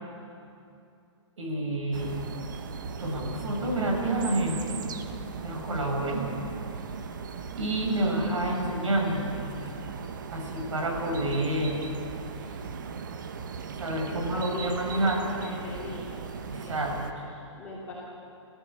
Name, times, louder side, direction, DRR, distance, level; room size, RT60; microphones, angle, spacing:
voice 1, 1.4-2.2 3.0-4.8 5.4-6.3 7.6-9.4 9.6-9.7 10.3-11.9 12.4-12.6 13.8-15.2 16.5-17.3, right 1 dB, 80° right, 2 dB, 6.4 m, -29 dB
sound 1, 1.9-17.1, right 5 dB, 40° right, 1.2 m, -38 dB
voice 2, 14.1-16.1 16.4-16.7 17.3-17.9, left 2 dB, 10° left, -8 dB, 3.0 m, -40 dB
29.0 x 15.0 x 8.5 m, 2.7 s
hypercardioid pair, 180°, 16 cm